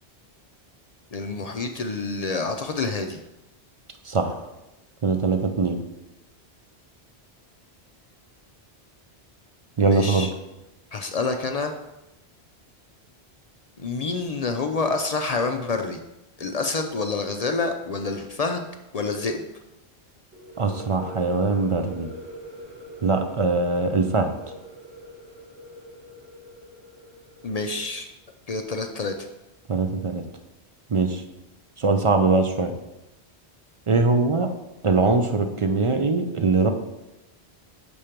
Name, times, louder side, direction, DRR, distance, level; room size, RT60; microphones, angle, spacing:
voice 1, 1.1-3.2 9.8-10.3 10.9-11.7 13.8-16.0 16.4-18.7 18.9-19.4 27.4-28.1 28.5-29.3, left 3 dB, 50° left, 6 dB, 0.4 m, -27 dB
voice 2, 4.0-4.4 5.0-5.8 9.8-10.3 20.6-22.1 23.0-24.3 29.7-30.2 30.9-31.2 31.8-32.7 33.9-34.5 34.8-36.7, right 3 dB, 45° right, 6 dB, 0.4 m, -22 dB
sound 1, 20.3-27.9, equal, 60° right, 1.4 m, -42 dB
7.0 x 4.4 x 5.0 m, 0.95 s
omnidirectional pair, 1.1 m